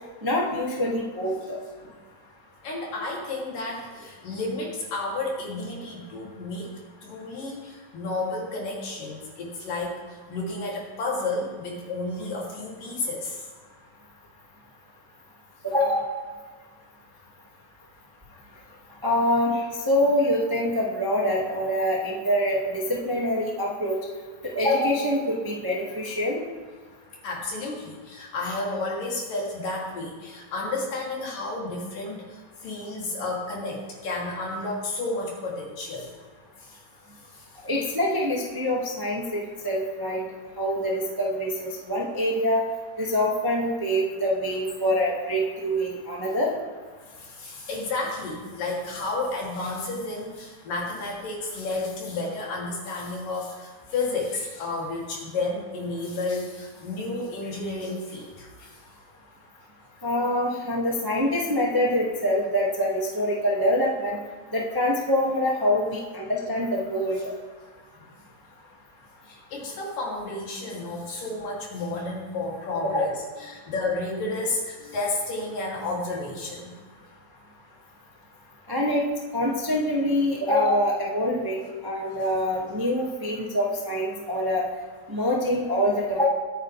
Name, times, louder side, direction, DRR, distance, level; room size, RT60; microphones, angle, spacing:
voice 1, 0.2-1.6 15.6-16.1 19.0-24.0 24.5-26.4 37.6-40.2 40.6-42.6 43.0-46.5 60.0-64.2 64.5-67.2 72.8-73.0 78.7-79.0 79.3-84.6 85.1-86.3, left 1 dB, 15° right, -3 dB, 0.7 m, -25 dB
voice 2, 2.6-6.7 7.0-13.5 27.2-36.1 36.6-36.8 37.3-37.5 47.2-58.8 69.2-73.1 73.4-76.7, left 2 dB, 65° left, -3 dB, 4.6 m, -31 dB
23.5 x 9.1 x 3.4 m, 1.4 s
omnidirectional pair, 4.2 m